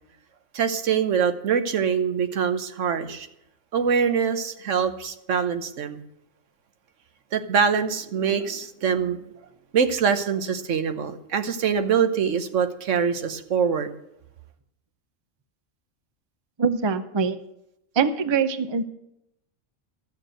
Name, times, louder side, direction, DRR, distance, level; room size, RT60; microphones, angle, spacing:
voice 1, 0.5-3.3 3.7-6.0 7.3-9.2 9.7-13.9, right 7 dB, 75° right, 9 dB, 1.2 m, -24 dB
voice 2, 16.6-17.4 18.0-18.8, right 5 dB, 30° right, 11 dB, 0.5 m, -23 dB
13.0 x 7.3 x 7.7 m, 0.80 s
omnidirectional pair, 1.3 m